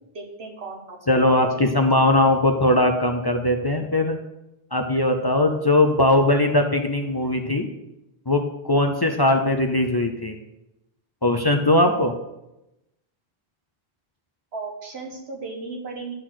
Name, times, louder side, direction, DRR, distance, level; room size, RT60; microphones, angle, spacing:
voice 1, 0.1-1.5 1.8-2.0 14.5-16.1, right 3 dB, 85° right, 1 dB, 1.8 m, -36 dB
voice 2, 1.1-4.2 4.7-7.7 8.3-10.3 11.2-12.1, left 1 dB, 30° left, 4 dB, 0.6 m, -20 dB
10.5 x 4.1 x 6.3 m, 0.91 s
omnidirectional pair, 1.0 m